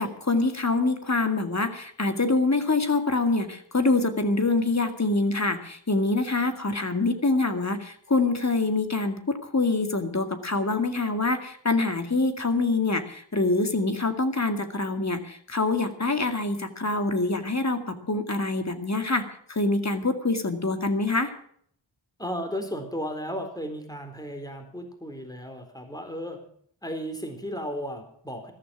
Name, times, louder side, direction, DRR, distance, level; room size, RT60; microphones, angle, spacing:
voice 1, 0.0-21.3, left 3 dB, 35° left, 7 dB, 2.2 m, -25 dB
voice 2, 22.2-26.4 26.8-28.5, equal, 10° left, 5 dB, 4.0 m, -34 dB
14.0 x 13.5 x 6.1 m, 0.63 s
wide cardioid pair, 85°, 46 cm